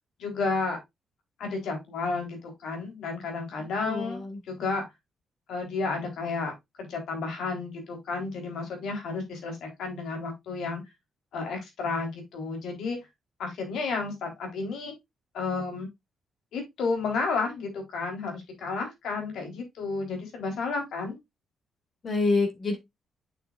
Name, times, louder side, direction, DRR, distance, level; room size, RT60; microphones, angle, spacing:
voice 1, 0.2-0.8 1.4-4.8 5.5-6.5 6.8-10.8 11.3-13.0 13.4-14.9 15.3-15.9 16.5-21.2, left 4 dB, 80° left, 3.8 m, -32 dB
voice 2, 3.8-4.4 22.0-22.8, left 3 dB, 40° left, 2.6 m, -26 dB
8.4 x 6.8 x 2.5 m
cardioid pair, 145°, 0 cm